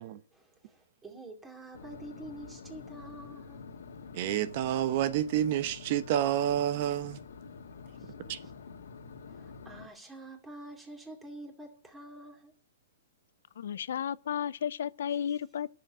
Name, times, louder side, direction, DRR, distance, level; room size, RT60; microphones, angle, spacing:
voice 1, 0.3-3.6 7.9-8.1 8.4-8.5 9.3-12.5, right 2 dB, 10° right, 2.6 m, -47 dB
sound 1, 1.7-9.9, left 5 dB, 85° left, 1.9 m, -47 dB
voice 2, 4.1-7.2 8.3-8.4, right 11 dB, 45° right, 0.9 m, -29 dB
voice 3, 13.6-15.7, left 9 dB, 70° left, 0.5 m, -33 dB
11.5 x 6.9 x 8.9 m
hypercardioid pair, 150°, 0 cm